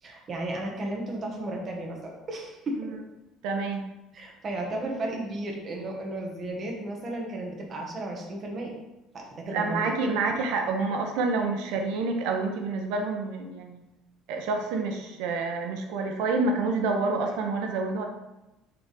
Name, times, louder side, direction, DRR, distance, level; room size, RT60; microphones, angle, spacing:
voice 1, 0.0-2.9 4.1-8.7 9.1-9.9, right 1 dB, 30° right, 0 dB, 1.3 m, -34 dB
voice 2, 3.4-3.8 9.5-13.8 14.3-18.0, right 3 dB, 85° right, 3 dB, 0.8 m, -28 dB
6.9 x 3.5 x 5.3 m, 0.98 s
cardioid pair, 165°, 0 cm